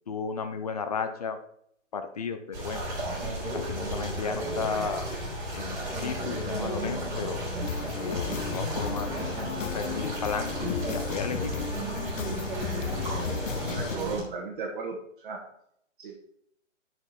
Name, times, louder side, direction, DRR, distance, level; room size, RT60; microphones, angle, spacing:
voice 1, 0.1-1.4 1.9-2.8 3.5-5.1 5.5-7.4 8.0-9.2 9.6-11.5, left 5 dB, 30° left, 8 dB, 0.6 m, -34 dB
sound 1, 2.5-14.2, equal, 10° right, 3.2 m, -33 dB
sound 2, 7.6-14.0, left 6 dB, 80° left, 0.8 m, -35 dB
voice 2, 13.6-15.4 16.0-16.2, right 4 dB, 45° right, 0 dB, 1.6 m, -35 dB
8.7 x 6.2 x 4.2 m, 0.71 s
hypercardioid pair, 160°, 38 cm